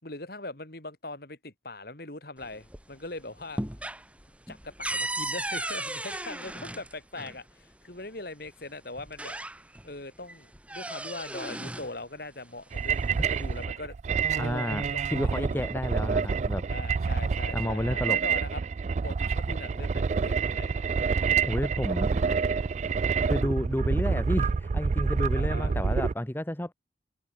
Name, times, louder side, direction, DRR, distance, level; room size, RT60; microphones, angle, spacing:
voice 1, 0.0-3.6 4.5-9.3 9.8-14.0 14.3-15.7 16.7-18.6 19.0-20.8 25.3-25.8, left 2 dB, 55° left, 3.3 m, -41 dB
sound 1, 2.4-3.1 3.4-7.4 8.5-8.6 9.0-9.9 10.3-11.9 12.9-13.7, right 1 dB, 5° right, 4.3 m, -36 dB
sound 2, 12.7-26.1, right 5 dB, 40° right, 0.3 m, -27 dB
voice 2, 14.4-14.8 15.1-16.6 17.5-18.2 21.4-22.1 23.2-26.7, left 1 dB, 10° left, 0.9 m, -31 dB
head